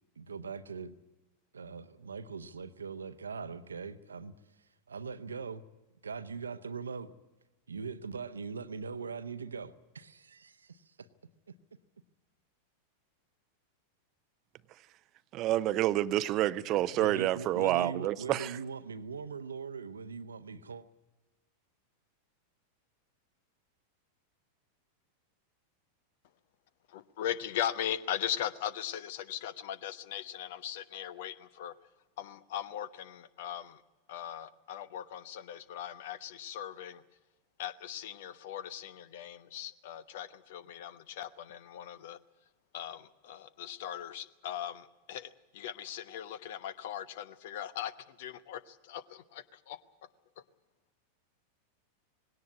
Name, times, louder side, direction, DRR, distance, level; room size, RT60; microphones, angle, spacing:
voice 1, 0.2-0.9 1.5-4.3 4.9-5.6 6.0-7.1 7.7-11.1 16.9-20.8, right 5 dB, 75° right, 0.9 m, -41 dB
voice 2, 15.3-18.6, right 14 dB, 35° right, 0.7 m, -28 dB
voice 3, 26.9-31.7 32.2-33.8 34.1-37.0 37.6-42.2 42.7-47.9 48.2-49.8, left 10 dB, 55° left, 1.0 m, -39 dB
20.0 x 17.5 x 9.5 m
figure-of-eight pair, 90°, 0 cm